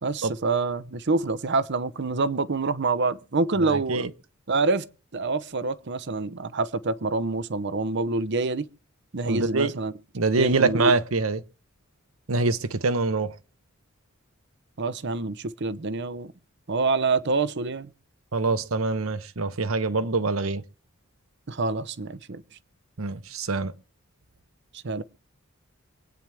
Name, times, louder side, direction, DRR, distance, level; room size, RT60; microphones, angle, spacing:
voice 1, 0.0-4.1 4.5-8.7 9.1-9.9 10.4-10.9 14.8-16.3 16.7-17.9 21.5-22.4 24.8-25.0, right 3 dB, 55° right, 0.7 m, -26 dB
voice 2, 3.6-4.1 9.2-9.7 10.1-11.4 12.3-13.3 18.3-20.6 23.0-23.7, right 3 dB, 80° right, 0.9 m, -25 dB
27.0 x 8.9 x 3.5 m
head